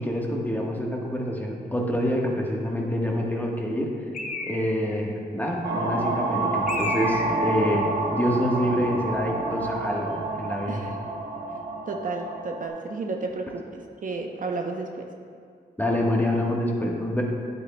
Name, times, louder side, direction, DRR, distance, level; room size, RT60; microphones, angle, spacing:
voice 1, 0.0-3.9 4.4-10.8 15.8-17.2, equal, 10° left, -1 dB, 1.2 m, -26 dB
Bird, 4.1-5.0 6.7-7.6, left 3 dB, 50° left, 0.8 m, -33 dB
sound 1, 5.6-12.7, right 2 dB, 80° right, 1.0 m, -29 dB
voice 2, 11.9-15.1, right 3 dB, 55° right, 2 dB, 0.7 m, -32 dB
9.3 x 8.2 x 2.2 m, 2.3 s
cardioid pair, 65°, 17 cm